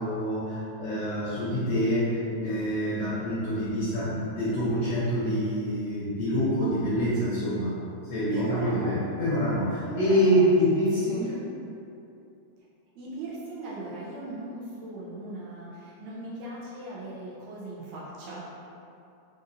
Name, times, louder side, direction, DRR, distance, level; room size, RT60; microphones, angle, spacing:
voice 1, 0.0-7.8 8.0-11.4, equal, 75° left, -10 dB, 1.5 m, -26 dB
voice 2, 8.3-9.0 9.9-11.3 13.0-18.4, right 3 dB, 75° right, -6 dB, 1.9 m, -38 dB
5.3 x 2.5 x 2.6 m, 2.7 s
omnidirectional pair, 3.4 m